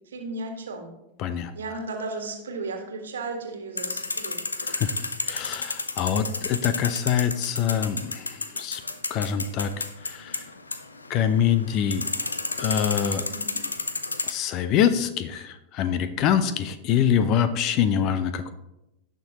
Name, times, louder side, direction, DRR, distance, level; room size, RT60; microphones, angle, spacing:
voice 1, 0.1-0.9 1.5-4.4 13.3-13.6, right 3 dB, 65° right, 3 dB, 1.7 m, -34 dB
voice 2, 1.2-1.5 4.6-4.9 5.3-8.8 9.1-9.7 10.0-10.4 11.1-12.1 12.6-13.3 14.3-18.5, left 8 dB, 40° left, 13 dB, 0.7 m, -25 dB
sound 1, 3.8-14.3, left 3 dB, 80° left, 0.6 m, -32 dB
17.5 x 6.1 x 3.0 m, 0.91 s
figure-of-eight pair, 90°, 0 cm